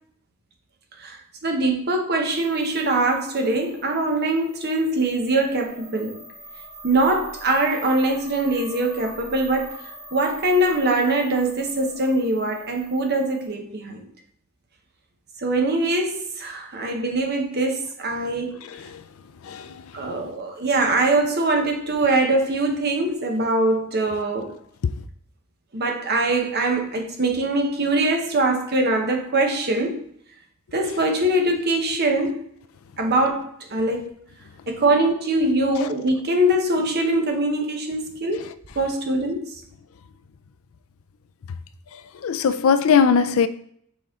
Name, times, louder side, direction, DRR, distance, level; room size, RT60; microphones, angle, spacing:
voice 1, 1.0-6.2 6.8-9.7 10.1-14.0 15.4-18.6 19.9-24.6 25.7-30.1 30.7-32.4 33.0-34.2 34.7-39.6, right 2 dB, 45° right, 1.0 m, -23 dB
sound 1, 2.3-13.5, right 1 dB, 20° right, 2.3 m, -44 dB
voice 2, 42.2-43.5, left 6 dB, 65° left, 0.4 m, -18 dB
6.3 x 4.1 x 3.6 m
head